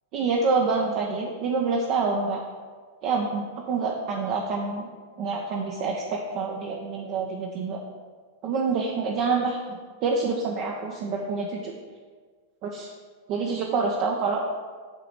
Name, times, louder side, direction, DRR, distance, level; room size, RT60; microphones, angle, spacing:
voice 1, 0.1-2.4 3.0-4.9 5.2-7.8 8.4-11.7 12.6-12.9 13.3-14.4, right 4 dB, 40° right, -1 dB, 0.8 m, -27 dB
7.5 x 4.0 x 6.5 m, 1.5 s
figure-of-eight pair, 90°, 0 cm